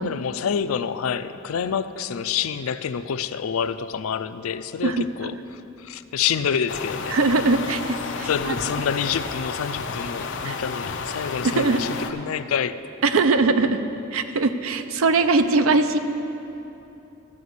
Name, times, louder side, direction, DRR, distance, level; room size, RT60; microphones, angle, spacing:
voice 1, 0.0-7.2 8.2-12.8, left 7 dB, 90° left, 13 dB, 0.4 m, -27 dB
voice 2, 4.8-5.3 7.1-8.6 10.4-10.6 11.4-11.8 13.0-13.8 14.1-16.0, right 3 dB, 75° right, 9 dB, 0.6 m, -21 dB
sound 1, 6.7-12.1, left 4 dB, 60° left, 0.7 m, -31 dB
13.0 x 5.1 x 8.2 m, 2.9 s
head